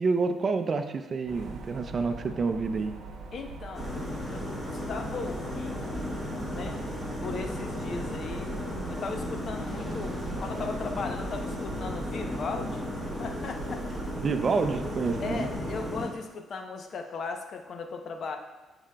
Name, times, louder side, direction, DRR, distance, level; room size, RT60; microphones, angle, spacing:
voice 1, 0.0-2.9 14.1-15.5, right 4 dB, 45° right, 8 dB, 0.5 m, -28 dB
sound 1, 1.3-15.5, right 4 dB, 85° right, 0.8 m, -42 dB
voice 2, 3.3-4.0 4.3-6.0 6.4-6.8 7.2-8.5 8.9-12.8 13.2-13.8 15.2-18.4, left 4 dB, 55° left, 5 dB, 0.7 m, -37 dB
sound 2, 3.7-16.1, left 1 dB, 15° left, 1.8 m, -35 dB
Boom, 9.7-14.5, right 1 dB, 10° right, 1.2 m, -52 dB
11.0 x 4.9 x 2.2 m, 1.1 s
cardioid pair, 90°, 0 cm